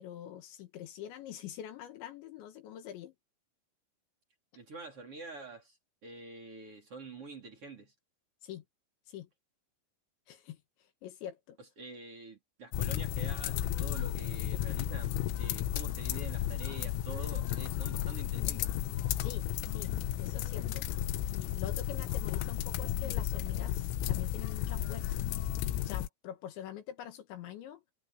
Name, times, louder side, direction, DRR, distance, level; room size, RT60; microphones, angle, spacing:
voice 1, 0.0-3.2 8.4-8.6 9.1-9.3 10.3-10.6 11.0-11.6 19.2-19.9 20.2-20.9 21.3-25.3 25.8-27.8, left 10 dB, 70° left, 3.6 m, -45 dB
voice 2, 4.5-5.8 6.0-7.9 11.8-18.7, right 3 dB, 30° right, 4.5 m, -47 dB
sound 1, 12.7-26.1, left 12 dB, 90° left, 3.7 m, -33 dB
omnidirectional pair, 5.7 m